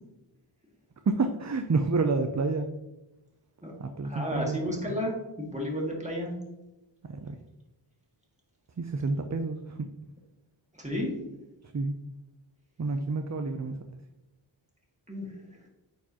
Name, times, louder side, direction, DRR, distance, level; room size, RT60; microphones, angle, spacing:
voice 1, 1.1-2.7 3.8-4.6 7.1-7.4 8.8-9.9 11.7-11.9 12.8-13.8, right 3 dB, 40° right, 6 dB, 0.5 m, -29 dB
voice 2, 4.0-6.3 10.8-11.1 15.1-15.3, equal, 15° right, -2 dB, 2.0 m, -32 dB
9.0 x 4.6 x 2.9 m, 0.97 s
wide cardioid pair, 40°, 46 cm